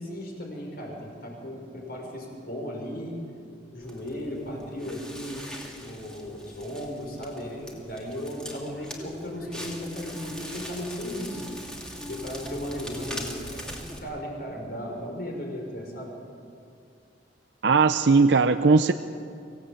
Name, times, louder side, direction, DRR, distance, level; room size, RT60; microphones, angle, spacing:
voice 1, 0.0-3.2 3.7-5.5 5.8-11.4 12.1-16.1, equal, 55° left, 0 dB, 6.0 m, -36 dB
Crackle, 3.8-14.0, equal, 5° left, 2.6 m, -40 dB
voice 2, 17.6-18.9, right 4 dB, 65° right, 9 dB, 0.7 m, -18 dB
25.5 x 17.0 x 8.7 m, 2.4 s
head